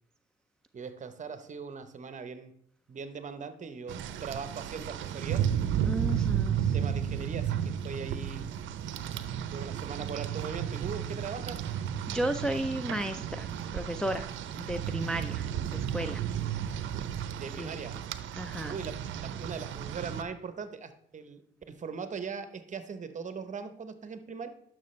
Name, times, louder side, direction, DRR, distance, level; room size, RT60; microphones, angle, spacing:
voice 1, 0.7-2.5 2.9-5.5 6.6-8.5 9.5-11.6 17.4-17.9 18.7-24.5, right 5 dB, 40° right, 10 dB, 0.9 m, -40 dB
Rain, 3.9-20.2, right 9 dB, 75° right, 0.6 m, -33 dB
voice 2, 5.9-6.8 12.1-13.5 13.7-14.3 14.5-16.2 16.5-16.6 17.6-17.8 18.4-18.8, right 1 dB, 5° left, 5 dB, 0.4 m, -34 dB
11.0 x 6.1 x 3.2 m, 0.70 s
cardioid pair, 90°, 20 cm